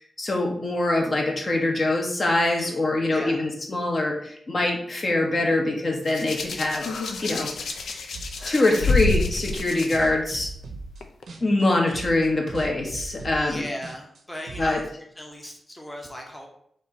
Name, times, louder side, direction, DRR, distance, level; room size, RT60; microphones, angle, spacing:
voice 1, 0.2-6.8 7.2-7.5 8.5-10.5 11.4-13.6 14.6-14.8, left 2 dB, 45° left, 1 dB, 0.9 m, -24 dB
voice 2, 2.4-2.8 3.1-3.4 13.3-14.8 15.2-16.5, equal, 15° left, 0 dB, 0.7 m, -37 dB
Hands, 6.1-10.0 11.0-11.2, left 3 dB, 85° left, 0.4 m, -27 dB
sound 1, 8.1-8.5 8.7-11.6 11.9-14.8, right 3 dB, 80° right, 0.7 m, -39 dB
4.2 x 2.6 x 4.1 m, 0.68 s
cardioid pair, 80°, 0 cm